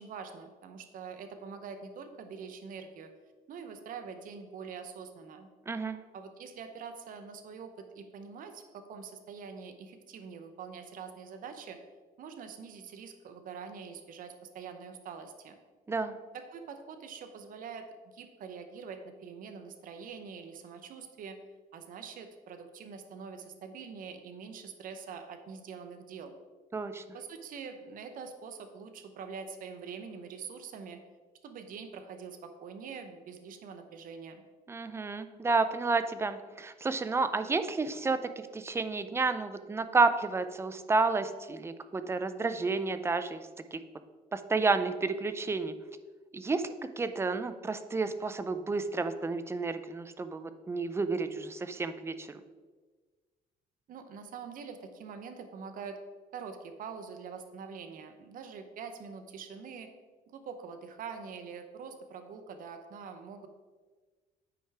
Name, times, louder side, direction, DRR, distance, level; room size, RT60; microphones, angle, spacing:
voice 1, 0.0-3.1 3.5-5.5 6.1-11.8 12.2-15.6 16.3-17.8 18.1-21.4 21.7-26.3 27.1-31.0 31.4-34.4 53.9-56.0 56.3-59.9 60.3-63.5, right 6 dB, 55° right, 7 dB, 0.7 m, -44 dB
voice 2, 5.7-6.0 15.9-16.2 26.7-27.0 34.7-43.8 44.3-45.7 46.3-46.7 47.0-52.4, right 3 dB, 15° right, 11 dB, 0.4 m, -31 dB
9.4 x 4.7 x 3.4 m, 1.4 s
cardioid pair, 110°, 17 cm